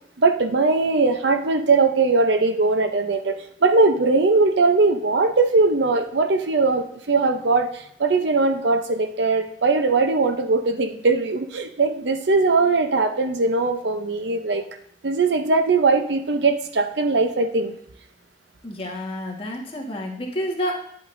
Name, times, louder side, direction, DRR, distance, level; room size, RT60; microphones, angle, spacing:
voice 1, 0.2-14.6 15.0-17.7, right 3 dB, 75° right, 8 dB, 0.7 m, -20 dB
voice 2, 18.6-20.9, equal, 30° left, -1 dB, 1.6 m, -29 dB
10.0 x 7.9 x 2.6 m, 0.72 s
head